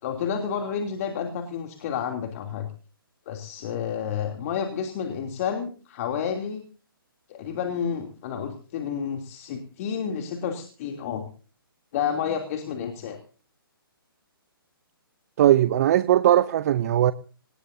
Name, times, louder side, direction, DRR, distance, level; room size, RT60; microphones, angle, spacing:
voice 1, 0.0-2.7 3.3-6.6 7.3-11.2 11.9-13.2, left 7 dB, 40° left, 3.0 m, -30 dB
voice 2, 15.4-17.1, right 12 dB, 40° right, 0.7 m, -19 dB
24.5 x 20.0 x 2.7 m
hypercardioid pair, 140°, 12 cm